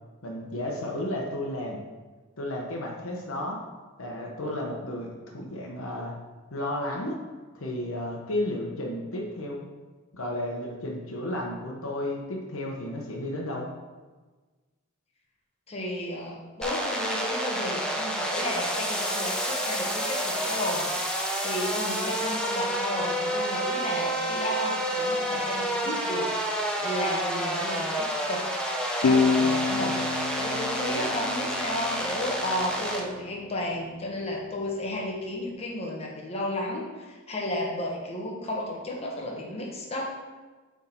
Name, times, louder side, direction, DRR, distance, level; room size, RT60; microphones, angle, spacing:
voice 1, 0.2-1.8 2.4-3.6 4.0-6.2 6.5-7.2 7.5-9.7 10.1-13.7, left 1 dB, 65° left, 0 dB, 1.0 m, -33 dB
voice 2, 15.7-28.4 29.0-40.1, left 1 dB, 30° left, -3 dB, 1.0 m, -33 dB
sound 1, 16.6-33.0, right 1 dB, 5° left, 0.6 m, -29 dB
sound 2, 29.0-32.5, left 5 dB, 85° left, 0.5 m, -27 dB
7.7 x 3.6 x 4.4 m, 1.3 s
head